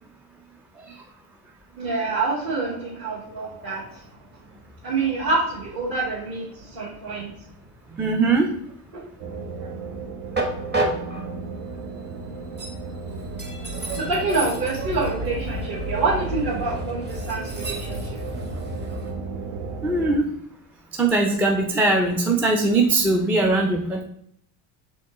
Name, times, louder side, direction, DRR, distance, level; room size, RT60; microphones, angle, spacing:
voice 1, 1.8-4.0 4.8-7.3 8.9-9.7 13.9-18.2, right 3 dB, 45° right, -8 dB, 1.7 m, -27 dB
Train, 2.3-19.1, right 1 dB, 20° right, 1.0 m, -34 dB
voice 2, 7.9-8.5 19.8-20.2 21.0-24.0, right 3 dB, 5° right, 1 dB, 0.4 m, -20 dB
sound 1, 9.2-20.2, right 4 dB, 60° right, 0.9 m, -34 dB
4.3 x 3.8 x 3.0 m, 0.67 s
supercardioid pair, 95°, 50 cm